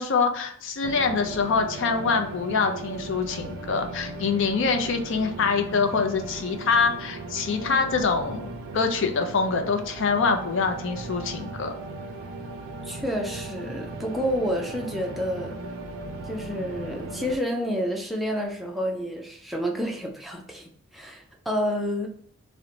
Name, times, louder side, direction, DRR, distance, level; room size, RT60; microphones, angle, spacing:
voice 1, 0.0-11.7, left 5 dB, 60° left, 5 dB, 0.4 m, -25 dB
sound 1, 0.8-17.4, right 2 dB, 80° right, 0.4 m, -37 dB
voice 2, 12.8-15.6 16.2-22.1, equal, ahead, 0 dB, 0.4 m, -29 dB
2.8 x 2.1 x 2.6 m, 0.63 s
head